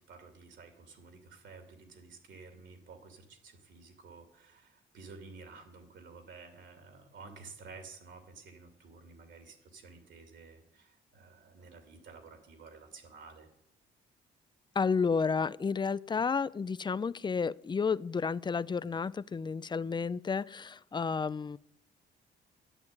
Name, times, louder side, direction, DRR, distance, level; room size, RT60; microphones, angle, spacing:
voice 1, 0.0-13.5, right 4 dB, 70° right, 6 dB, 2.7 m, -52 dB
voice 2, 14.7-21.6, left 5 dB, 25° left, 19 dB, 0.4 m, -31 dB
11.0 x 9.5 x 9.1 m, 0.77 s
cardioid pair, 90°, 20 cm